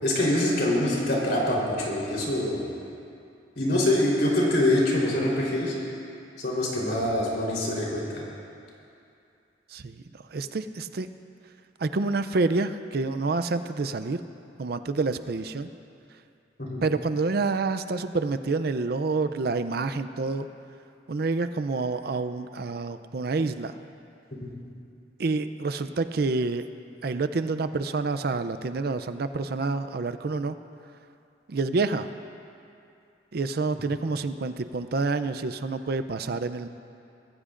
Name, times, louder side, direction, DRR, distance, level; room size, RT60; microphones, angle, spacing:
voice 1, 0.0-2.6 3.6-5.7 6.4-8.2 16.6-16.8, left 1 dB, 60° left, -4 dB, 3.8 m, -24 dB
voice 2, 9.7-10.0 10.3-11.1 11.8-14.2 14.6-15.7 16.8-20.5 21.1-23.8 25.2-26.6 27.0-30.6 31.5-32.1 33.3-36.7, right 3 dB, 55° right, 11 dB, 0.5 m, -28 dB
23.5 x 15.0 x 2.5 m, 2.6 s
head